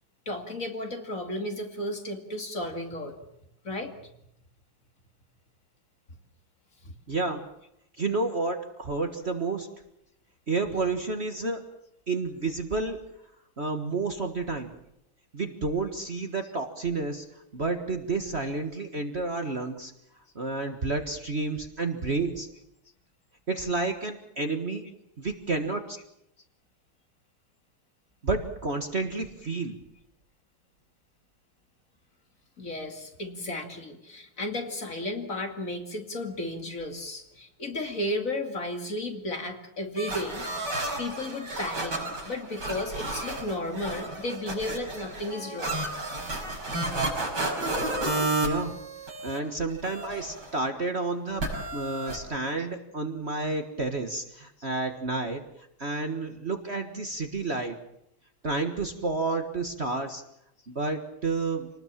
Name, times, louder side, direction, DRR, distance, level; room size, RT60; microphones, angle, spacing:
voice 1, 0.3-3.2 3.6-3.9 6.8-6.9 10.7-10.9 16.4-16.5 32.6-42.0 42.2-45.8 57.5-57.6 60.1-60.2, left 1 dB, 40° left, 4 dB, 2.8 m, -34 dB
voice 2, 7.1-7.5 8.0-9.7 10.5-11.6 12.1-13.0 13.6-14.7 15.3-17.2 17.5-19.9 20.3-22.5 23.5-24.9 25.2-26.0 28.2-29.8 48.4-48.8 49.2-55.4 55.8-57.8 58.4-60.2 60.7-61.7, right 3 dB, 35° right, 6 dB, 1.7 m, -30 dB
sound 1, 40.0-49.4 49.7-50.5 51.4-52.2, right 2 dB, 55° right, 6.4 m, -32 dB
27.5 x 19.5 x 7.4 m, 0.79 s
omnidirectional pair, 2.1 m